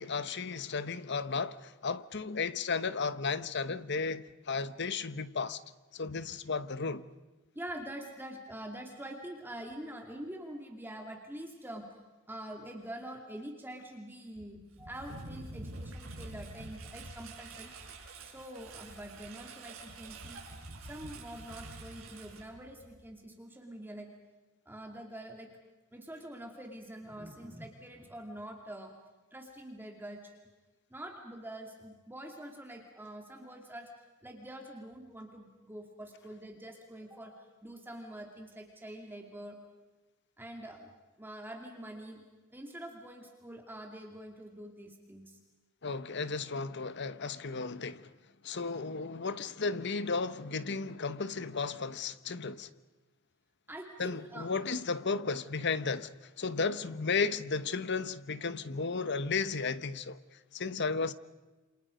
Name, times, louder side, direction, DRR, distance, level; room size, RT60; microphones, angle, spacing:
voice 1, 0.0-5.6 5.9-7.1 45.8-48.1 48.4-52.7 54.0-56.1 56.4-60.2 60.5-61.1, left 4 dB, 55° left, 1.1 m, -34 dB
voice 2, 7.5-11.9 12.3-17.8 18.2-20.4 20.8-24.1 24.7-25.5 25.9-28.9 29.3-30.4 30.9-33.9 34.2-39.6 40.4-40.9 41.2-42.2 42.5-45.4 53.7-54.5, right 1 dB, 10° right, 2.4 m, -45 dB
Engine, 14.4-23.1, right 2 dB, 70° right, 6.0 m, -47 dB
28.5 x 27.5 x 5.2 m
head